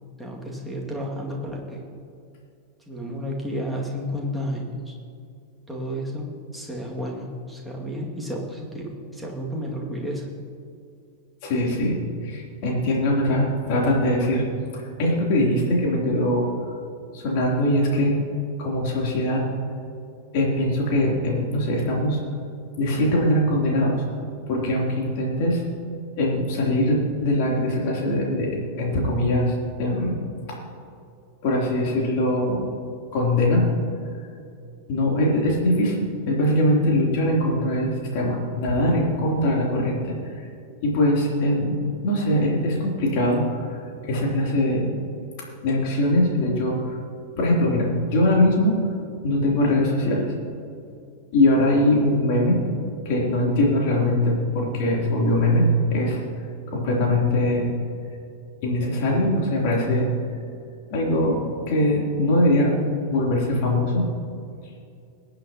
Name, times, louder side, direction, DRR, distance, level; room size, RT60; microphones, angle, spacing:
voice 1, 0.2-1.8 2.9-4.9 5.7-10.3, equal, ahead, -3 dB, 2.3 m, -31 dB
voice 2, 11.4-14.4 14.7-16.5 17.1-18.2 18.6-19.4 20.3-22.2 22.8-24.0 24.5-25.6 26.2-30.2 30.5-30.6 31.4-32.6 33.1-33.6 34.9-40.4 40.8-44.9 45.6-47.0 47.4-48.8 49.2-50.3 51.3-52.6 53.0-55.6 55.9-56.2 56.7-57.7 58.6-60.1 60.9-61.4 61.7-62.8 63.1-64.0, left 1 dB, 50° left, -2 dB, 3.3 m, -22 dB
22.5 x 8.8 x 3.0 m, 2.4 s
figure-of-eight pair, 90°, 0 cm